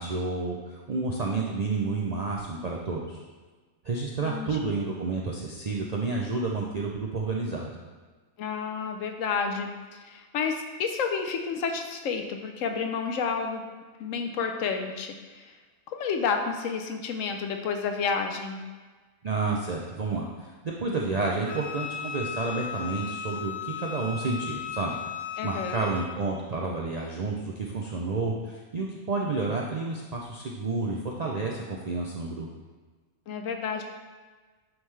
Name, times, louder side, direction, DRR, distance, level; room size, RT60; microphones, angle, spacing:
voice 1, 0.0-3.2 3.8-7.8 19.2-25.0 25.4-32.5, right 3 dB, 55° right, -2 dB, 0.4 m, -30 dB
voice 2, 4.2-4.7 8.4-13.7 14.0-15.5 15.9-18.6 25.4-25.8 33.3-33.8, left 5 dB, 75° left, 5 dB, 1.0 m, -30 dB
Wind instrument woodwind instrument, 21.5-26.1, left 7 dB, 60° left, 0.5 m, -36 dB
8.9 x 3.7 x 3.2 m, 1.4 s
omnidirectional pair, 1.4 m